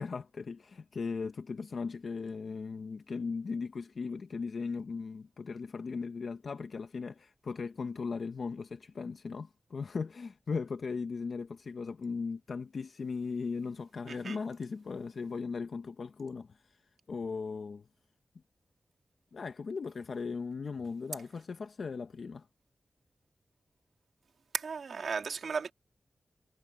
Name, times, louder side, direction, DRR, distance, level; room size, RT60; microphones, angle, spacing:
voice 1, 0.0-16.8 17.1-17.9 19.3-22.5, left 5 dB, 65° left, 0.7 m, -38 dB
voice 2, 14.1-14.4 24.5-25.7, right 5 dB, 85° right, 2.5 m, -35 dB
wide cardioid pair, 150°, 0 cm